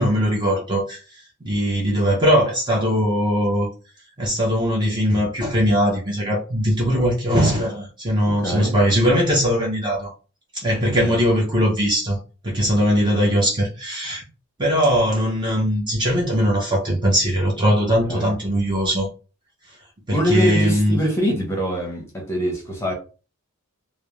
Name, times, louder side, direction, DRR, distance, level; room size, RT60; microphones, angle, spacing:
voice 1, 0.0-3.7 4.2-10.1 10.5-12.2 12.4-14.2 14.6-19.1 20.1-21.0, equal, 20° right, 0.5 m, -20 dB
voice 2, 8.3-8.8 10.8-11.2 18.1-18.3 20.1-22.9, equal, 10° left, 0.8 m, -24 dB
2.4 x 2.0 x 3.0 m
head